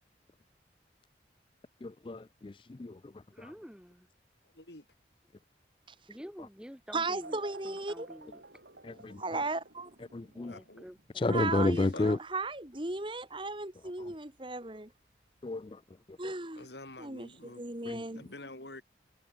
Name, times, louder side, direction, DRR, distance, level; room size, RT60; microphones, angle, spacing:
voice 1, 1.8-3.0 8.8-9.2 10.1-10.5 11.2-12.2 15.4-15.8 17.9-18.0, left 2 dB, 30° left, 0.4 m, -31 dB
voice 2, 3.3-4.1 6.1-8.4 10.3-11.7, equal, 5° right, 2.4 m, -49 dB
voice 3, 4.4-4.8 10.4-10.8 11.6-12.1 16.6-17.6 18.1-18.8, left 2 dB, 75° left, 6.0 m, -48 dB
voice 4, 6.9-8.1 9.2-9.9 11.3-14.9 16.2-16.7 17.0-18.3, right 3 dB, 30° right, 2.1 m, -36 dB
sound 1, 7.2-15.7, right 3 dB, 80° right, 6.7 m, -54 dB
head